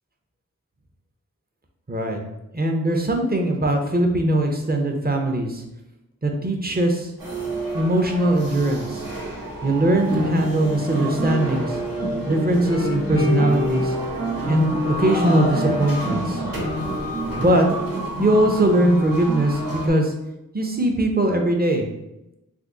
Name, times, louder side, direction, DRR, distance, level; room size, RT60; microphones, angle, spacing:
voice 1, 1.9-2.2 2.5-5.6 6.2-7.1 7.7-9.0 9.6-11.8 12.3-13.9 14.5-16.4 17.4-17.7 18.2-20.1 20.5-21.9, right 1 dB, 30° right, 2 dB, 0.6 m, -21 dB
sound 1, 7.2-19.9, right 1 dB, 75° right, 1.0 m, -27 dB
sound 2, 12.7-16.1, left 3 dB, 85° left, 0.7 m, -29 dB
3.5 x 2.0 x 3.7 m, 0.91 s
wide cardioid pair, 40°, 34 cm